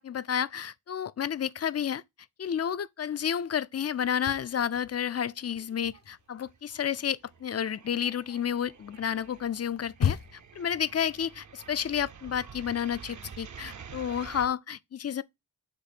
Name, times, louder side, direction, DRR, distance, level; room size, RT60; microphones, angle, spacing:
voice 1, 0.0-2.0 2.4-15.2, left 8 dB, 40° left, 0.5 m, -31 dB
sound 1, 4.0-5.2 5.5-10.6, left 8 dB, 60° left, 0.9 m, -35 dB
sound 2, 5.5-6.1 6.4-14.5, right 6 dB, 50° right, 0.8 m, -48 dB
7.8 x 3.1 x 4.2 m
cardioid pair, 60°, 39 cm